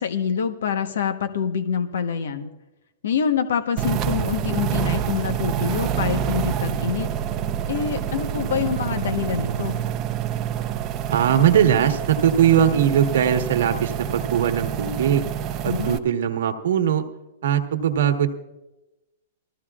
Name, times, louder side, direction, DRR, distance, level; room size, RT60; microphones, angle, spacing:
voice 1, 0.0-2.5 3.0-7.1 7.7-9.8 15.7-16.0, left 7 dB, 75° left, 8 dB, 1.1 m, -26 dB
sound 1, 3.8-16.0, right 9 dB, 35° right, 0.8 m, -27 dB
voice 2, 11.1-15.3 15.6-17.0 17.4-18.3, right 9 dB, 70° right, 7 dB, 1.4 m, -20 dB
19.5 x 14.5 x 2.4 m, 1.0 s
hypercardioid pair, 125°, 0 cm